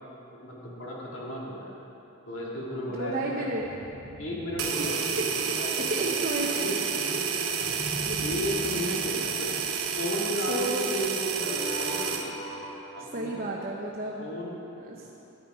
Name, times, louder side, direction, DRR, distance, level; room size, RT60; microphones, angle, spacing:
voice 1, 0.3-1.7 2.3-3.5 4.2-7.7 8.2-9.6 10.0-12.2 12.9-13.5 14.2-14.6, equal, 60° left, -5 dB, 2.5 m, -34 dB
sound 1, 1.9-2.2 3.5-6.1 7.6-10.7 11.3-13.8, equal, 25° left, 2.8 m, -42 dB
voice 2, 2.8-3.7 4.8-4.9 5.9-6.7 8.0-8.2 10.5-10.9 13.1-14.3 14.8-15.1, right 2 dB, 40° right, -3 dB, 1.0 m, -32 dB
sound 2, 4.6-12.3, right 6 dB, 80° right, 1.0 m, -30 dB
14.0 x 9.8 x 4.9 m, 2.9 s
head